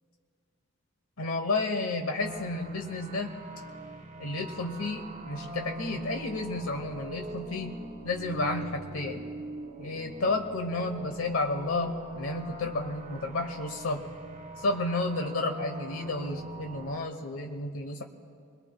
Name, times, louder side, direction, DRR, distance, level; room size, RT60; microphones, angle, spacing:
voice 1, 1.2-3.3 4.2-7.8 8.0-9.3 9.8-14.0 14.6-18.0, left 2 dB, 80° left, 4 dB, 1.1 m, -31 dB
sound 1, 2.2-17.0, right 1 dB, 35° right, 1.2 m, -42 dB
29.0 x 21.5 x 2.3 m, 2.3 s
head